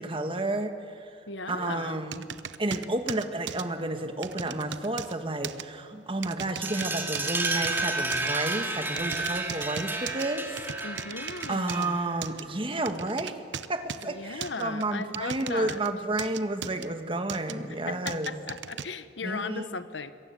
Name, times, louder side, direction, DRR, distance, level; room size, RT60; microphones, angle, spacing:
voice 1, 0.0-1.1 1.5-2.2 2.6-10.6 11.5-13.4 13.7-18.3 19.2-19.6, right 2 dB, 30° right, 7 dB, 1.7 m, -31 dB
voice 2, 1.3-2.0 10.8-12.0 14.0-15.8 17.9-20.1, left 4 dB, 80° left, 12 dB, 1.2 m, -37 dB
sound 1, 2.1-3.7 4.2-5.1 5.4-5.6 6.2-7.3 7.6-8.3 9.0-10.3 10.6-11.9 12.2-12.4 12.9-14.1 14.4-15.9 16.2-16.9 17.3-17.5 18.1-18.9, right 8 dB, 75° right, 0.8 m, -37 dB
sound 2, 6.6-12.2, right 2 dB, 10° right, 2.3 m, -31 dB
26.5 x 23.0 x 7.7 m, 2.4 s
head